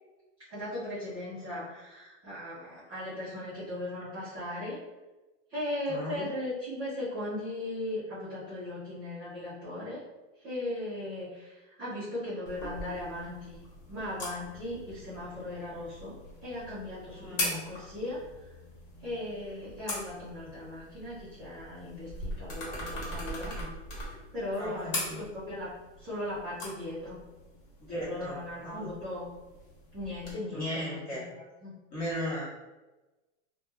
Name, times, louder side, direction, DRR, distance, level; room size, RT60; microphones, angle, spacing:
voice 1, 0.5-4.8 5.5-10.0 10.4-13.6 13.9-16.2 16.4-18.6 19.0-23.6 24.3-27.2 27.9-29.3 29.9-31.7, left 1 dB, 15° right, -13 dB, 0.4 m, -38 dB
voice 2, 5.9-6.3 17.1-17.6 23.5-23.7 24.6-25.2 27.9-28.4 28.6-28.9 30.5-31.2 31.9-32.4, equal, 25° left, -7 dB, 0.8 m, -36 dB
sound 1, 12.5-30.3, left 1 dB, 50° left, 1.1 m, -41 dB
2.2 x 2.1 x 3.0 m, 1.1 s
supercardioid pair, 165°, 36 cm